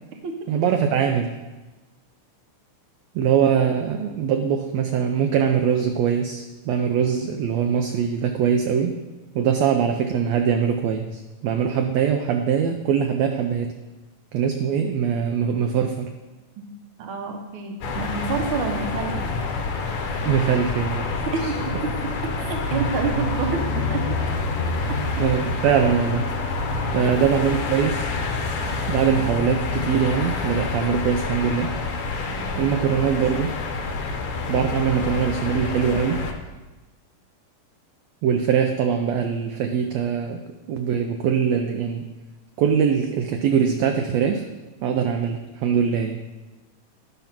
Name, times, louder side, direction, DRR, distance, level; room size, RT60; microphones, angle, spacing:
voice 1, 0.5-1.4 3.1-9.0 9.3-13.7 14.3-16.1 20.2-21.1 21.4-21.5 22.7-23.2 24.5-24.6 25.2-26.3 26.9-28.1 28.9-31.7 32.6-33.6 34.5-36.2 38.2-40.4 40.7-42.1 42.6-44.4 44.8-46.2, right 7 dB, 80° right, 5 dB, 1.5 m, -22 dB
voice 2, 17.0-19.3 21.1-21.6 21.8-24.3 24.9-25.0 27.0-27.1 32.3-32.8, right 5 dB, 60° right, 3 dB, 1.5 m, -29 dB
sound 1, 17.8-36.3, left 3 dB, 65° left, 1.4 m, -27 dB
11.0 x 5.5 x 5.9 m, 1.2 s
omnidirectional pair, 3.5 m